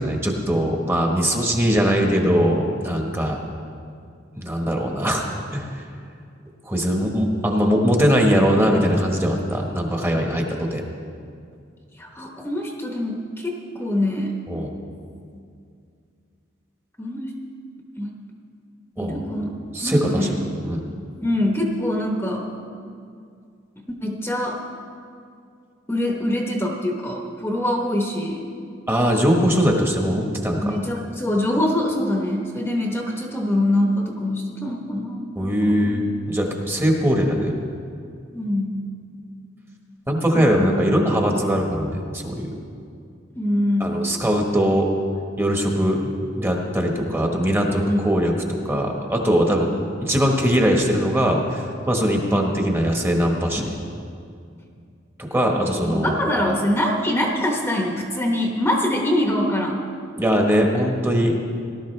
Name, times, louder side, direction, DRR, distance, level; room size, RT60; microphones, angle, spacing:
voice 1, 0.0-3.4 4.3-5.3 5.5-5.8 6.7-10.8 14.5-14.7 19.0-19.2 19.7-20.3 20.6-20.8 28.9-30.7 35.4-37.5 40.1-42.5 43.8-44.9 45.4-49.7 50.0-53.7 55.2-56.1 60.2-61.3, equal, 15° right, 1 dB, 1.2 m, -21 dB
voice 2, 11.9-14.4 17.0-17.3 18.0-18.2 19.0-19.5 19.8-20.4 21.2-22.5 23.8-24.6 25.9-28.5 30.6-36.1 38.3-38.8 40.3-41.3 43.3-44.0 47.9-48.0 55.8-59.8, left 1 dB, 10° left, 0 dB, 1.0 m, -24 dB
18.0 x 12.0 x 3.2 m, 2.4 s
head